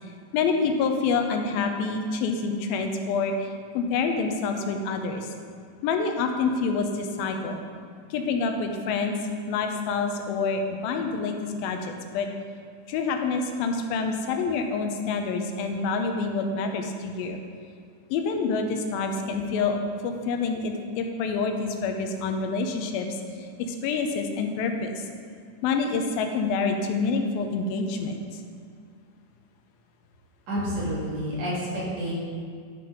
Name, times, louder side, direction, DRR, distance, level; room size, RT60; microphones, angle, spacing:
voice 1, 0.3-5.3 5.8-7.6 8.1-9.2 9.5-12.3 12.9-17.4 18.1-25.0 25.6-28.4, left 4 dB, 90° left, 5 dB, 2.5 m, -27 dB
voice 2, 30.5-32.1, equal, 50° right, -8 dB, 3.5 m, -29 dB
11.0 x 5.9 x 5.1 m, 2.2 s
omnidirectional pair, 4.2 m